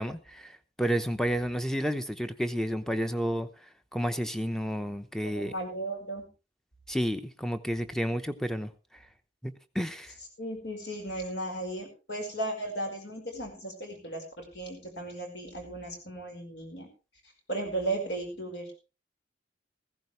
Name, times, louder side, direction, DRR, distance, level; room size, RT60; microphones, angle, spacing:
voice 1, 0.0-3.5 3.9-5.5 6.9-8.7 9.4-10.1, equal, 5° left, 10 dB, 0.8 m, -31 dB
voice 2, 5.2-6.3 10.4-16.9 17.5-18.8, right 2 dB, 70° left, 3 dB, 5.3 m, -36 dB
15.5 x 15.0 x 3.3 m, 0.31 s
head